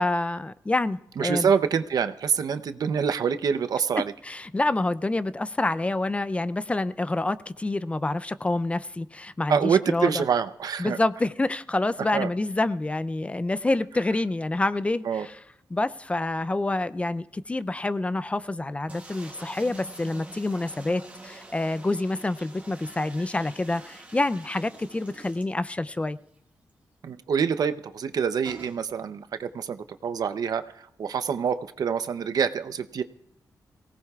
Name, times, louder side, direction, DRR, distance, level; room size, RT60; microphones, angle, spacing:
voice 1, 0.0-1.5 4.3-10.2 10.8-15.3 15.7-26.2, left 2 dB, 20° left, 15 dB, 0.4 m, -27 dB
voice 2, 1.2-4.1 9.5-11.0 12.1-12.3 15.0-15.3 27.0-33.0, right 7 dB, 70° right, 11 dB, 0.7 m, -26 dB
sound 1, 18.9-26.0 26.4-26.5 26.7-26.8 28.4-28.8, right 2 dB, 20° right, 2.4 m, -46 dB
24.5 x 17.5 x 2.4 m, 0.79 s
wide cardioid pair, 110°, 7 cm